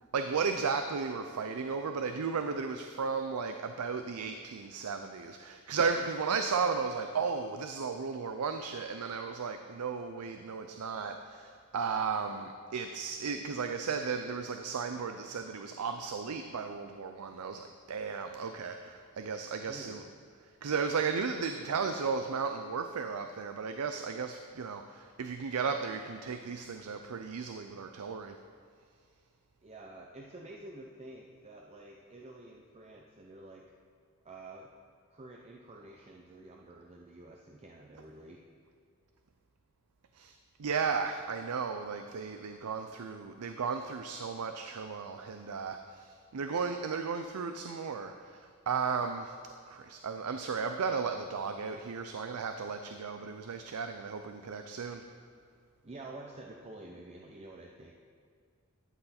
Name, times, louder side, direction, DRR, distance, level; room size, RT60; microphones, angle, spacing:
voice 1, 0.0-20.0 20.4-28.4 40.1-49.4 49.7-55.0, right 5 dB, 85° right, 7 dB, 0.5 m, -35 dB
voice 2, 19.7-20.1 29.6-33.6 34.2-34.7 35.1-38.4 55.8-57.9, right 2 dB, 30° right, 0 dB, 0.6 m, -49 dB
12.0 x 7.9 x 4.3 m, 2.2 s
head